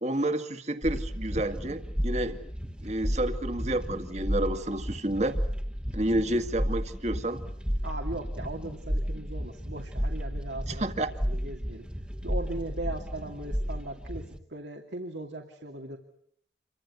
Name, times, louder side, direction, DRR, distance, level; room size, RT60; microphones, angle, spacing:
voice 1, 0.0-2.4 2.8-5.4 5.9-7.4 10.7-11.1, right 1 dB, 40° right, 9 dB, 2.0 m, -30 dB
sound 1, 0.8-14.4, equal, 5° right, 1.4 m, -33 dB
voice 2, 7.8-11.9 12.2-16.0, right 2 dB, 80° right, 2 dB, 2.7 m, -39 dB
28.5 x 24.5 x 8.3 m, 0.68 s
head